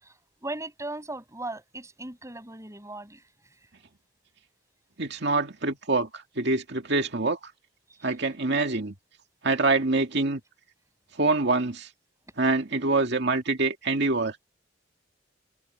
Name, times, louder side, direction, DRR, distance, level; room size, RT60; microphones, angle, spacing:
voice 1, 0.0-3.2, right 2 dB, 15° right, 7.6 m, -38 dB
voice 2, 5.0-7.4 8.0-8.9 9.4-10.4 11.2-11.9 12.4-14.4, right 3 dB, 60° right, 2.2 m, -25 dB
open air
head